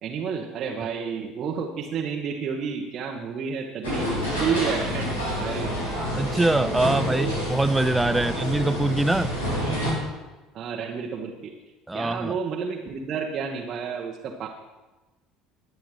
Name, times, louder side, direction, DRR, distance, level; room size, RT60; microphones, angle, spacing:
voice 1, 0.0-4.1 4.4-5.8 7.1-7.3 8.1-8.3 10.5-11.5 11.9-14.5, right 6 dB, 45° right, 1.3 m, -30 dB
sound 1, 3.8-9.9, equal, 75° left, 4.7 m, -28 dB
voice 2, 6.1-9.3 11.9-12.3, right 2 dB, 10° right, 0.3 m, -23 dB
20.5 x 9.4 x 3.3 m
figure-of-eight pair, 65°, 0 cm